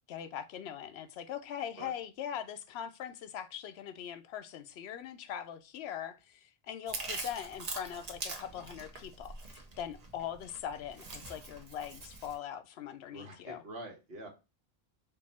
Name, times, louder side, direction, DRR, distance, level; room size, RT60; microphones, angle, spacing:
voice 1, 0.1-13.6, left 9 dB, 85° left, 0.8 m, -41 dB
Chewing mastication, 6.9-12.4, right 3 dB, 40° right, 0.9 m, -43 dB
voice 2, 13.1-14.3, right 1 dB, 70° right, 1.4 m, -45 dB
4.5 x 2.6 x 4.2 m
omnidirectional pair, 1.0 m